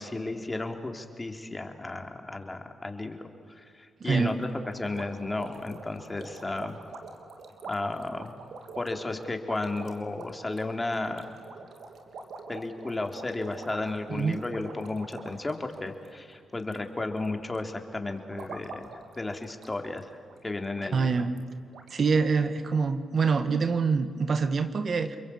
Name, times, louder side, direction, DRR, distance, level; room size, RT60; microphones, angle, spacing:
voice 1, 0.0-4.5 4.7-6.8 7.6-8.3 8.8-11.3 12.5-18.9 19.2-20.1 20.4-21.3, left 2 dB, 25° left, 5 dB, 3.5 m, -33 dB
voice 2, 4.0-4.3 14.1-14.4 20.9-21.3 21.9-25.2, right 5 dB, 60° right, 10 dB, 1.7 m, -25 dB
sound 1, 4.1-16.9 17.1-17.6 18.1-20.0 20.3-20.4 20.7-20.8 21.4-21.5 21.7-21.9, right 3 dB, 75° right, 3.2 m, -46 dB
30.0 x 22.5 x 8.8 m, 2.3 s
supercardioid pair, 55°, 0 cm